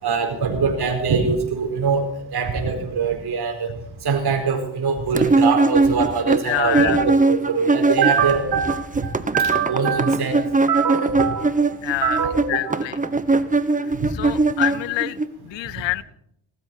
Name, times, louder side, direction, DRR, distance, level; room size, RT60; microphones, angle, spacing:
voice 1, 0.0-3.7 4.0-11.6 12.0-12.8 13.8-14.1, right 5 dB, 60° right, 4 dB, 4.5 m, -23 dB
sound 1, 5.2-8.3 8.6-15.3, right 3 dB, 20° right, 1.1 m, -20 dB
voice 2, 6.5-7.0 11.8-12.2 12.5-13.0 14.1-16.0, left 15 dB, 75° left, 20 dB, 0.7 m, -26 dB
19.0 x 13.0 x 4.5 m, 0.71 s
cardioid pair, 80°, 44 cm